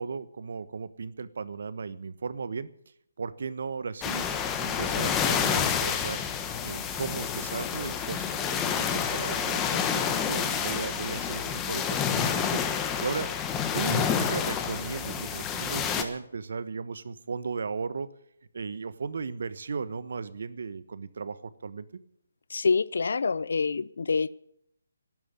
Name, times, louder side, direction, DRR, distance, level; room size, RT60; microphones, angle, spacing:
voice 1, 0.0-2.7 3.2-4.3 4.6-6.2 6.6-13.3 13.7-18.1 18.5-21.9, right 5 dB, 65° right, 15 dB, 1.2 m, -36 dB
sound 1, 4.0-16.0, left 7 dB, 15° left, 1.3 m, -29 dB
voice 2, 22.5-24.3, left 4 dB, 65° left, 20 dB, 0.7 m, -26 dB
12.5 x 11.0 x 9.6 m, 0.73 s
figure-of-eight pair, 155°, 0 cm